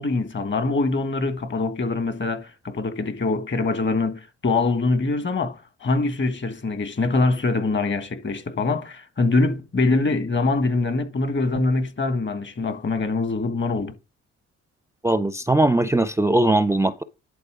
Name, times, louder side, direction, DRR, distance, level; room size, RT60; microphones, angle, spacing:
voice 1, 0.0-13.9, left 3 dB, 40° left, 1.5 m, -24 dB
voice 2, 15.0-17.0, right 2 dB, 10° right, 0.5 m, -20 dB
11.0 x 4.3 x 4.8 m
cardioid pair, 90°, 30 cm